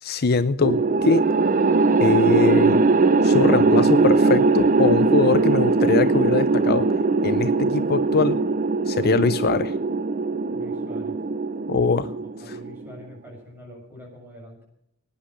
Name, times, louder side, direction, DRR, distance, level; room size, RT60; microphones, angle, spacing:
voice 1, 0.0-1.2 2.0-2.8 3.2-6.9 7.2-8.4 8.9-9.7 11.7-12.1 12.4-12.6, left 4 dB, 45° left, 12 dB, 0.6 m, -22 dB
sound 1, 0.6-12.9, right 3 dB, 35° right, 0.6 m, -20 dB
voice 2, 10.5-11.2 12.4-14.7, left 1 dB, 10° right, 0 dB, 7.1 m, -44 dB
18.5 x 9.9 x 6.5 m, 0.76 s
head